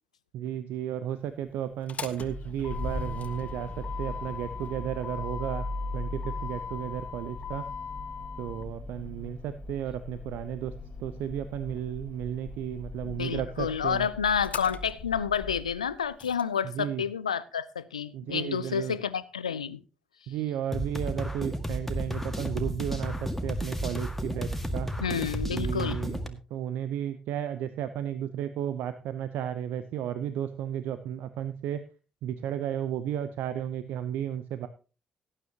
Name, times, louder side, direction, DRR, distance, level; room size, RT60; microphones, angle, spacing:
voice 1, 0.3-3.7 4.0-5.7 5.9-7.6 8.4-10.7 11.0-14.1 16.7-17.0 18.1-19.0 20.3-24.9 25.5-31.8 32.2-34.7, right 10 dB, 65° right, 0.8 m, -33 dB
Motor vehicle (road), 1.7-16.4, left 3 dB, 40° left, 1.4 m, -38 dB
voice 2, 13.0-19.8 25.0-26.0, left 7 dB, 85° left, 0.5 m, -30 dB
sound 1, 20.7-26.3, equal, 5° left, 1.9 m, -32 dB
18.0 x 9.9 x 2.9 m
figure-of-eight pair, 40°, 3 cm